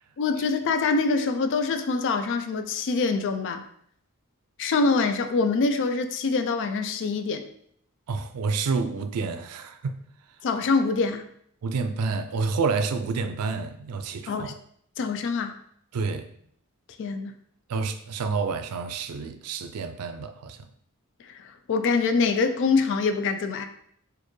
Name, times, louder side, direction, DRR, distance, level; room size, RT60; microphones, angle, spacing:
voice 1, 0.2-3.7 4.6-7.5 10.4-11.3 14.3-14.5 15.0-15.6 17.0-17.3 21.3-23.6, left 4 dB, 55° left, 0.3 m, -25 dB
voice 2, 8.1-10.0 11.6-14.5 15.9-16.3 17.7-20.6, right 4 dB, 90° right, 0.4 m, -29 dB
4.2 x 2.6 x 3.1 m
head